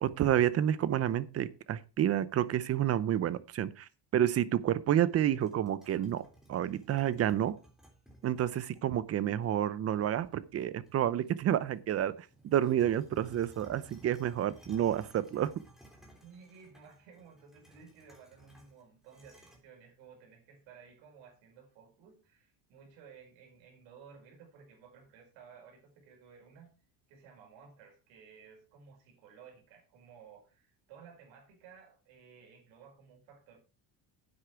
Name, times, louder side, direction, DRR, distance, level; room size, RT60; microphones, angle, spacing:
voice 1, 0.0-6.2 6.5-7.5 8.2-12.1 12.4-15.5, right 11 dB, 35° right, 17 dB, 0.7 m, -29 dB
sound 1, 5.2-8.8 9.4-9.5 10.0-11.1 11.5-19.6, right 1 dB, ahead, 3.3 m, -58 dB
voice 2, 16.2-26.7 27.1-33.6, right 6 dB, 90° right, 2 dB, 5.1 m, -56 dB
10.0 x 8.4 x 4.5 m, 0.34 s
cardioid pair, 155°, 44 cm